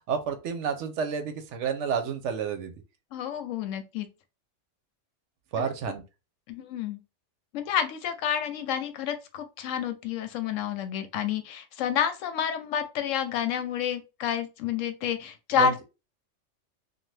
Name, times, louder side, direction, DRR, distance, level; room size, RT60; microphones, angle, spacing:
voice 1, 0.1-2.7 5.5-6.0 15.5-15.7, right 7 dB, 75° right, 0.9 m, -30 dB
voice 2, 3.1-4.1 5.6-5.7 6.5-7.0 7.5-15.9, left 8 dB, 80° left, 0.9 m, -29 dB
2.7 x 2.3 x 3.2 m
omnidirectional pair, 1.3 m